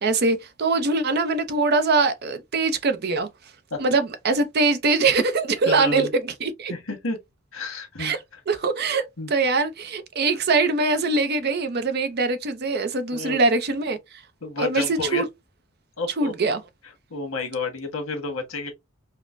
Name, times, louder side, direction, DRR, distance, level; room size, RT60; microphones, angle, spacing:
voice 1, 0.0-3.3 3.8-6.7 8.0-8.2 8.5-14.0 14.6-15.2 16.2-16.6, right 3 dB, 50° right, 0.6 m, -22 dB
voice 2, 5.7-6.1 6.7-7.2 7.5-8.4 9.2-9.3 13.1-13.4 14.4-15.2 16.0-16.3 17.1-18.7, left 3 dB, 65° left, 1.4 m, -30 dB
5.0 x 2.1 x 2.5 m
head